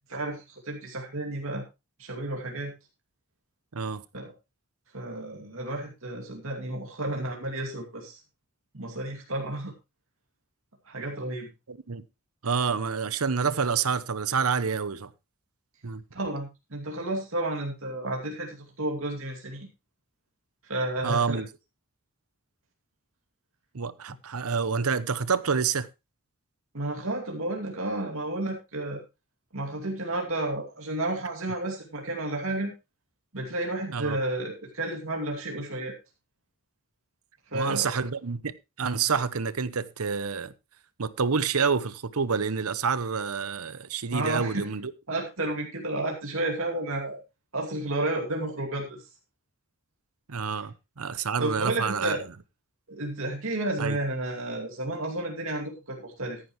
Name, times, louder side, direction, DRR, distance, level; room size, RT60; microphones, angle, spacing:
voice 1, 0.1-1.6 2.0-2.7 4.1-4.3 4.9-8.2 8.7-9.7 10.9-11.5 16.1-19.7 20.6-21.4 26.7-29.0 29.5-32.7 33.3-35.9 37.5-37.9 44.1-44.7 45.1-47.2 47.5-49.1 50.6-50.7 51.4-52.2 52.9-56.4, right 2 dB, 70° right, 2.6 m, -31 dB
voice 2, 3.7-4.0 11.7-12.0 12.4-15.1 15.8-16.0 21.0-21.5 23.7-25.9 33.9-34.2 37.5-38.5 38.8-40.5 41.0-44.9 50.3-52.2 53.8-54.0, right 5 dB, 85° right, 0.9 m, -28 dB
14.5 x 10.0 x 3.1 m
head